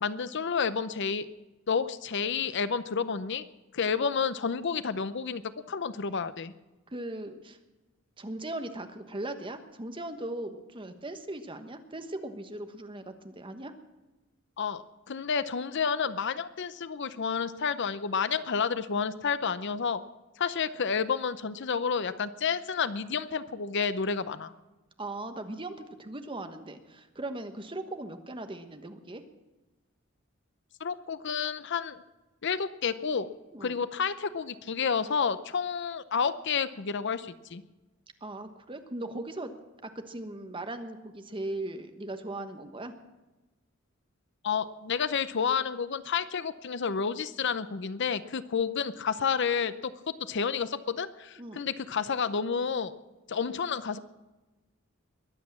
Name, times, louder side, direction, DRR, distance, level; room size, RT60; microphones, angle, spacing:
voice 1, 0.0-1.3 1.7-3.4 3.7-5.4 5.7-6.5 14.6-20.0 20.4-24.5 30.8-32.0 32.4-33.3 33.6-37.6 44.4-52.9 53.3-54.0, left 6 dB, 60° left, 14 dB, 0.7 m, -30 dB
voice 2, 6.9-7.6 8.2-13.7 25.0-29.2 33.5-33.8 38.2-39.5 39.8-42.9 51.4-51.6, right 2 dB, 25° right, 7 dB, 1.3 m, -38 dB
22.0 x 8.4 x 7.3 m, 1.1 s
head